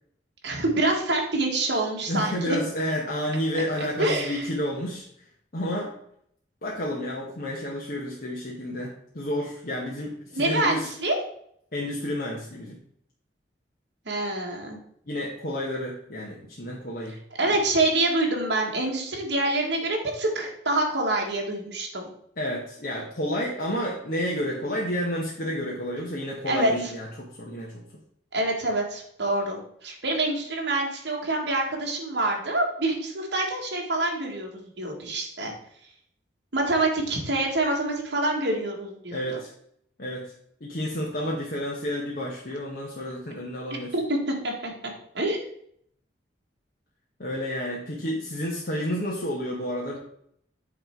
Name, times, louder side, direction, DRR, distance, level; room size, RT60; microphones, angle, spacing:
voice 1, 0.4-2.6 3.5-3.6 4.0-4.4 10.3-11.2 14.0-14.8 17.4-22.1 26.5-26.7 28.3-35.5 36.5-39.4 43.9-44.7 45.1-45.4, right 2 dB, 70° right, 0 dB, 1.5 m, -26 dB
voice 2, 2.1-5.3 5.5-5.9 6.6-10.9 11.7-12.8 15.1-17.2 17.4-17.6 22.4-27.9 39.1-39.5 40.0-40.3 40.6-43.9 47.2-50.0, equal, 50° left, -3 dB, 1.0 m, -30 dB
8.1 x 3.2 x 4.4 m, 0.68 s
head